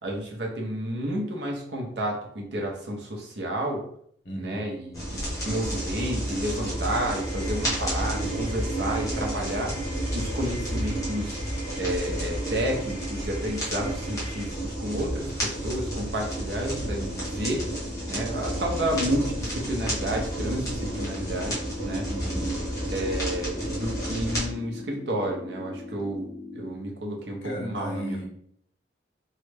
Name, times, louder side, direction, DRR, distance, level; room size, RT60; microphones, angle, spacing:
voice 1, 0.0-3.8 4.4-9.8 10.1-11.4 11.7-17.6 18.1-22.1 22.9-28.2, right 1 dB, 65° right, 0 dB, 0.8 m, -31 dB
voice 2, 4.2-4.6 22.0-22.5 27.4-28.3, equal, 70° left, 0 dB, 0.9 m, -35 dB
sound 1, 4.9-24.5, right 1 dB, 15° left, 1.0 m, -31 dB
sound 2, 7.0-14.5, left 1 dB, 40° right, 1.1 m, -46 dB
sound 3, 16.7-26.7, left 3 dB, 45° left, 0.7 m, -41 dB
3.1 x 2.3 x 3.3 m, 0.66 s
head